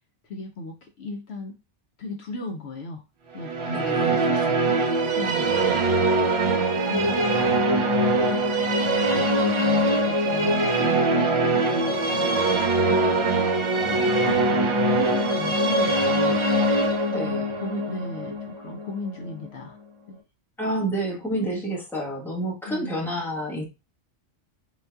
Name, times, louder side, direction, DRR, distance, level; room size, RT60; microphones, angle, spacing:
voice 1, 0.2-1.6 2.0-3.0 3.3-4.8 5.2-5.9 6.4-8.4 8.8-12.3 12.8-16.4 17.1-19.8 20.1-20.2 22.7-23.0, left 2 dB, 65° left, 3 dB, 0.8 m, -36 dB
sound 1, 3.4-19.4, right 2 dB, 55° right, 0.3 m, -22 dB
voice 2, 3.7-4.2 17.1-17.5 20.6-23.6, right 1 dB, ahead, -4 dB, 1.1 m, -29 dB
4.0 x 3.8 x 2.3 m, 0.28 s
omnidirectional pair, 1.2 m